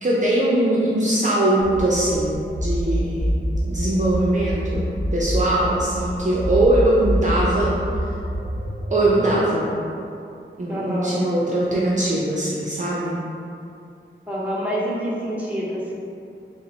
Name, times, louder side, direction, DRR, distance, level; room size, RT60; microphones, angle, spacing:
voice 1, 0.0-3.3 3.7-7.8 8.9-9.7 10.6-13.1, right 1 dB, 40° right, -6 dB, 0.6 m, -21 dB
sound 1, 1.6-9.2, equal, 35° left, 1.0 m, -26 dB
voice 2, 10.7-11.2 14.3-15.9, equal, 5° right, -6 dB, 0.9 m, -27 dB
3.8 x 2.1 x 4.2 m, 2.6 s
wide cardioid pair, 50°, 20 cm